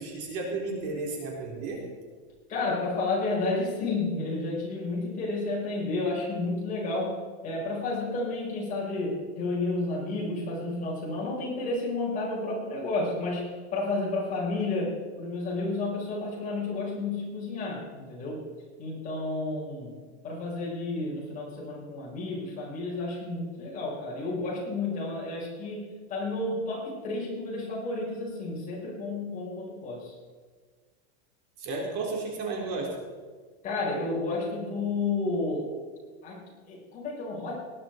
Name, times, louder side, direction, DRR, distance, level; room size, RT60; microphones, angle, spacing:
voice 1, 0.0-1.8 31.6-32.9, right 3 dB, 50° right, -1 dB, 4.0 m, -33 dB
voice 2, 2.5-18.5 18.8-19.9 20.2-30.1 33.6-35.8 36.2-37.6, left 2 dB, 25° left, -3 dB, 4.7 m, -31 dB
19.0 x 10.5 x 4.5 m, 1.5 s
supercardioid pair, 160°, 32 cm